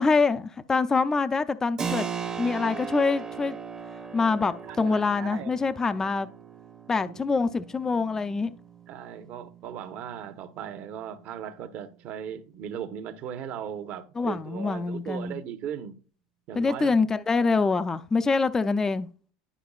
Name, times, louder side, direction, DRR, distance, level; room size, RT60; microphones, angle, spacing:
voice 1, 0.0-2.1 2.4-3.6 4.1-6.3 6.9-8.5 14.2-15.4 16.6-19.1, left 4 dB, 15° left, 0.4 m, -25 dB
Keyboard (musical), 1.8-12.2, right 6 dB, 20° right, 0.8 m, -39 dB
voice 2, 4.7-5.5 7.0-7.2 8.9-15.9 16.5-16.9, right 9 dB, 45° right, 1.0 m, -38 dB
11.0 x 4.8 x 2.3 m
supercardioid pair, 135°, 4 cm